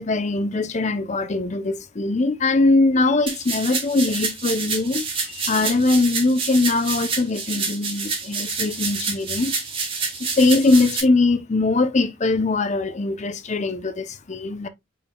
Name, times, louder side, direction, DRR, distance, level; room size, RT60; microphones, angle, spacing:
voice 1, 0.0-9.5 10.2-14.7, left 3 dB, 35° left, 0.6 m, -21 dB
sound 1, 3.3-11.0, right 4 dB, 25° right, 1.6 m, -28 dB
5.3 x 4.4 x 2.2 m
head